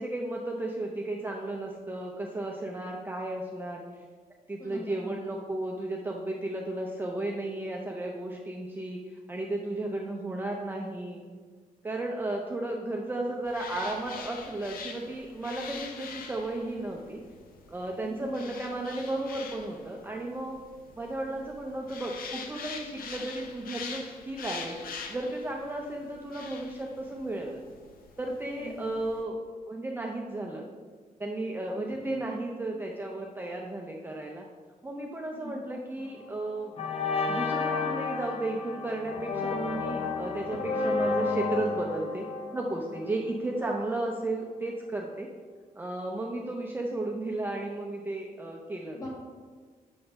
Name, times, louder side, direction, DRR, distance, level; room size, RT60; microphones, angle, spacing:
voice 1, 0.0-3.8 4.5-11.2 11.8-17.2 17.7-20.6 21.0-27.6 28.2-30.6 31.2-34.5 34.8-36.7 37.2-42.3 42.5-45.3 45.8-49.0, right 2 dB, 15° right, 0 dB, 0.5 m, -34 dB
voice 2, 4.6-5.0 18.0-18.4 28.5-28.9 32.0-32.4 35.3-35.6 48.9-49.1, equal, 25° left, -4 dB, 2.1 m, -40 dB
sound 1, 13.4-29.2, left 5 dB, 85° left, 0.7 m, -44 dB
sound 2, 36.0-36.3 36.8-43.6, left 4 dB, 45° left, 0.7 m, -31 dB
6.9 x 3.8 x 5.2 m, 1.6 s
cardioid pair, 125°, 15 cm